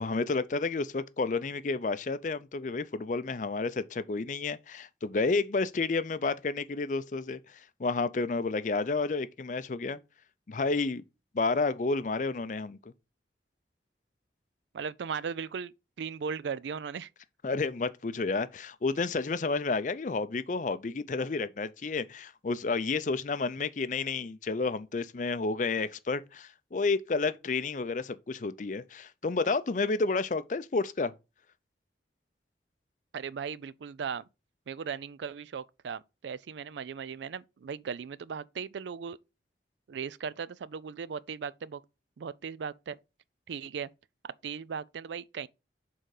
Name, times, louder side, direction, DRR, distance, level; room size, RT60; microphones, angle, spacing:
voice 1, 0.0-10.0 10.5-11.0 11.3-12.8 17.4-31.1, left 3 dB, 45° left, 0.4 m, -30 dB
voice 2, 14.7-15.7 16.0-17.1 33.1-34.2 34.7-39.2 39.9-41.8 42.2-43.0 43.5-43.9 44.2-45.5, right 6 dB, 80° right, 0.4 m, -37 dB
6.6 x 3.8 x 4.8 m
head